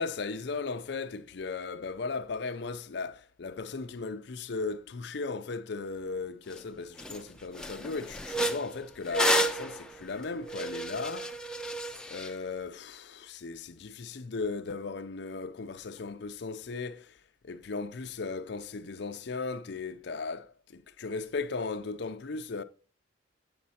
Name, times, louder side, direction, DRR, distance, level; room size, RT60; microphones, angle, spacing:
voice 1, 0.0-11.4 12.1-17.2 17.4-22.6, left 4 dB, 60° left, 0.5 m, -36 dB
sound 1, 6.5-6.6 7.0-7.2 7.5-12.3, equal, 5° left, 0.5 m, -31 dB
8.5 x 7.2 x 4.1 m
head